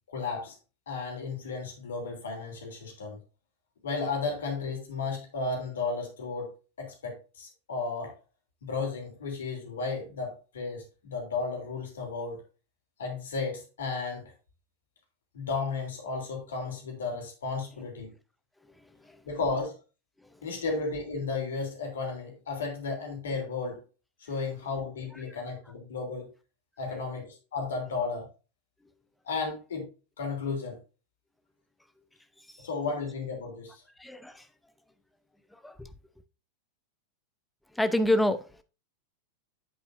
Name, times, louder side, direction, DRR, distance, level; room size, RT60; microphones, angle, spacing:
voice 1, 0.1-0.6 0.9-3.2 3.8-6.5 6.8-8.1 8.6-12.4 13.0-14.3 15.3-18.1 19.2-19.8 20.4-23.8 24.2-26.3 26.8-28.3 29.2-29.9 30.2-30.8 32.6-33.8, left 4 dB, 65° left, 3.1 m, -34 dB
voice 2, 18.8-19.2 20.2-20.3 25.3-25.4 32.5-32.7 34.0-34.5 35.5-35.9 37.7-38.6, left 1 dB, 5° left, 0.7 m, -29 dB
8.3 x 8.1 x 2.5 m
figure-of-eight pair, 90°, 0 cm